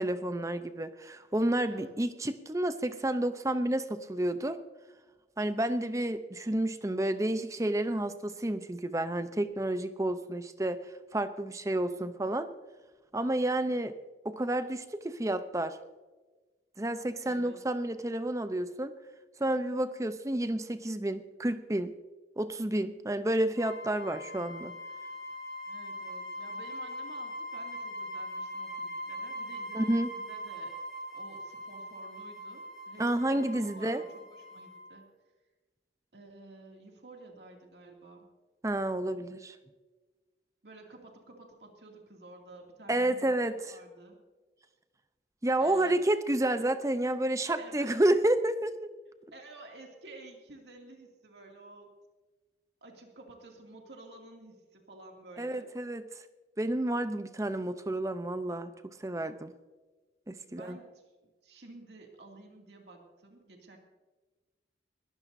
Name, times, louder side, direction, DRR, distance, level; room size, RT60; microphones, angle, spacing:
voice 1, 0.0-4.6 5.4-10.8 11.1-12.5 13.1-14.0 14.2-15.8 16.8-18.9 19.4-21.9 22.4-24.7 29.7-30.1 33.0-34.0 38.6-39.6 42.9-43.6 45.4-48.9 55.4-56.1 56.6-58.7 59.0-59.5 60.3-60.8, right 1 dB, 20° right, 10 dB, 0.6 m, -30 dB
voice 2, 17.2-17.6 25.7-30.7 31.1-35.1 36.1-38.2 40.6-44.2 45.6-46.0 47.6-48.0 49.3-51.9 52.8-55.7 60.5-61.0 61.4-63.8, right 2 dB, 75° right, 1 dB, 2.4 m, -51 dB
sound 1, 23.6-35.0, equal, ahead, 3.6 m, -41 dB
21.0 x 15.0 x 2.7 m, 1.2 s
head